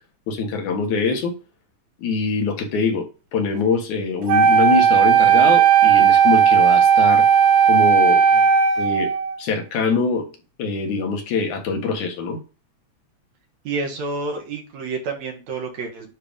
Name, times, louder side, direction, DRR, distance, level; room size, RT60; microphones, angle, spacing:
voice 1, 0.3-1.3 2.0-3.1 3.3-7.2 7.7-8.2 8.8-9.1 9.4-10.3 10.6-12.4, left 4 dB, 80° left, 4 dB, 2.9 m, -23 dB
Wind instrument woodwind instrument, 4.3-9.4, right 7 dB, 90° right, 2.4 m, -15 dB
voice 2, 13.6-16.1, right 3 dB, 70° right, 2 dB, 2.7 m, -29 dB
9.7 x 3.4 x 5.1 m, 0.33 s
omnidirectional pair, 3.4 m